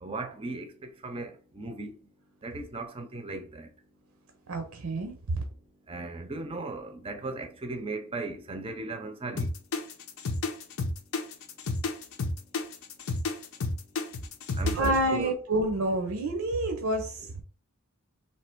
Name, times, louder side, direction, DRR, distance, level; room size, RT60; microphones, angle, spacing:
voice 1, 0.0-2.1 2.4-3.7 5.9-9.5 14.5-15.3, right 2 dB, 25° right, 0.6 m, -37 dB
voice 2, 4.5-5.4 14.7-17.4, right 1 dB, 85° right, 0.7 m, -28 dB
sound 1, 9.4-15.0, left 3 dB, 70° left, 0.6 m, -31 dB
3.3 x 2.8 x 4.4 m
head